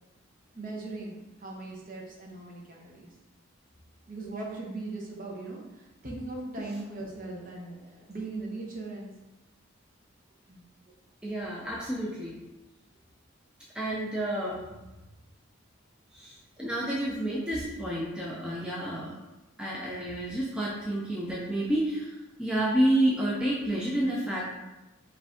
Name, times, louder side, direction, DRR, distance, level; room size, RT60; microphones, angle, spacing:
voice 1, 0.5-3.1 4.1-7.7 8.1-9.1 10.5-10.6, right 2 dB, 40° right, -2 dB, 0.9 m, -39 dB
voice 2, 11.2-12.4 13.7-14.7 16.1-19.1 19.6-24.4, right 1 dB, 5° right, -6 dB, 0.5 m, -29 dB
5.0 x 2.7 x 3.5 m, 1.0 s
head